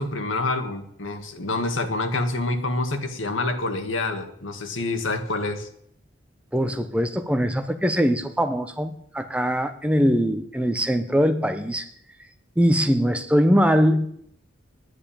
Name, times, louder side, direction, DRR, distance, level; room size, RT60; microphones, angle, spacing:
voice 1, 0.0-5.7, left 2 dB, 85° left, 6 dB, 1.8 m, -27 dB
voice 2, 6.5-11.9 12.6-14.1, equal, 5° right, 8 dB, 0.7 m, -22 dB
10.0 x 9.4 x 8.8 m, 0.69 s
head